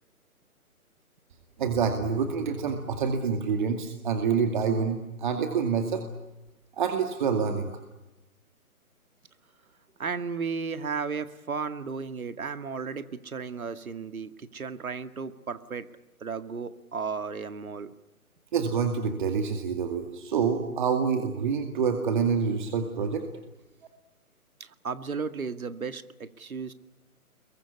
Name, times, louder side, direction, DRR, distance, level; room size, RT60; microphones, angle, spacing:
voice 1, 1.6-6.0 6.7-7.7 18.5-23.2, right 6 dB, 35° right, 5 dB, 2.3 m, -27 dB
voice 2, 10.0-15.9 16.2-17.9 24.6-26.7, right 5 dB, 70° right, 10 dB, 2.1 m, -34 dB
27.5 x 23.0 x 8.5 m, 1.0 s
figure-of-eight pair, 150°, 44 cm